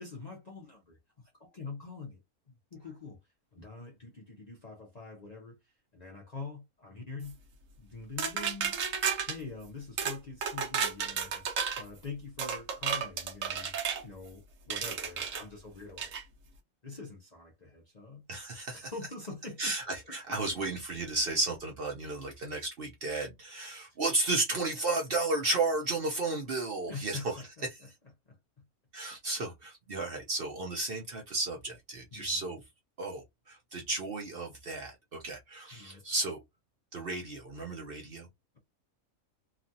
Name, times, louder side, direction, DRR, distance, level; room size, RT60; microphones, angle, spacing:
voice 1, 0.0-2.2 2.5-3.2 3.5-5.6 5.9-7.3 7.8-8.8 9.3-11.4 11.8-13.7 14.0-16.1 16.8-18.2 18.7-20.4 26.9-27.9 28.3-28.4 32.1-32.5 35.7-36.0, left 4 dB, 40° left, 0.6 m, -45 dB
sound 1, 8.2-9.4 10.0-10.2 10.4-11.8 12.4-14.0 14.7-15.4 16.0-16.2, right 7 dB, 70° right, 1.1 m, -32 dB
voice 2, 18.3-18.8 19.6-27.4 27.7-27.8 28.9-32.6 33.0-36.4 36.9-38.3, right 2 dB, 55° right, 0.7 m, -33 dB
2.9 x 2.5 x 2.6 m
omnidirectional pair, 1.5 m